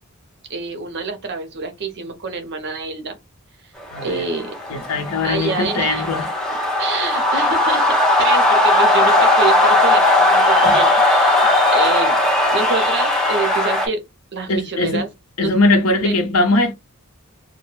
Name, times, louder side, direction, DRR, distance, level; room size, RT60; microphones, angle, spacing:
voice 1, 0.5-3.2 4.0-4.5 5.2-6.0 6.8-12.2 12.5-14.0 14.3-15.1 15.4-15.5 16.0-16.2, right 4 dB, 50° right, 0.6 m, -27 dB
voice 2, 3.9-4.3 4.7-6.3 10.6-10.8 14.5-15.0 15.4-16.7, left 2 dB, 85° left, 0.8 m, -20 dB
sound 1, 4.0-13.9, left 2 dB, 5° left, 0.7 m, -17 dB
2.1 x 2.1 x 3.1 m
head